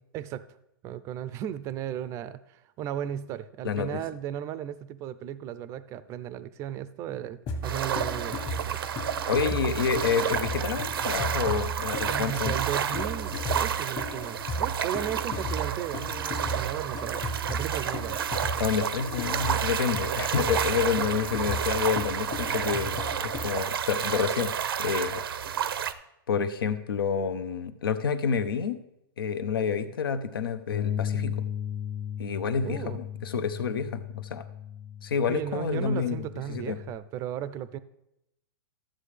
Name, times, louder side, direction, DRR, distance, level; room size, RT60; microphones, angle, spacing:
voice 1, 0.1-0.5 0.8-8.4 8.7-8.8 9.4-9.6 12.1-18.2 32.6-33.0 35.3-37.8, right 10 dB, 25° right, 15 dB, 0.4 m, -35 dB
voice 2, 3.6-4.0 9.3-12.6 18.6-24.5 24.8-25.2 26.3-28.8 29.2-31.4 32.2-34.0 34.3-34.4 35.0-36.8, left 6 dB, 85° left, 11 dB, 0.8 m, -28 dB
sound 1, 7.5-23.6, equal, 35° left, 1.4 m, -35 dB
sound 2, 7.6-25.9, right 8 dB, 85° right, 0.7 m, -31 dB
Bass guitar, 30.7-37.0, left 9 dB, 50° left, 0.7 m, -36 dB
13.0 x 7.5 x 3.3 m, 0.84 s
hypercardioid pair, 145°, 12 cm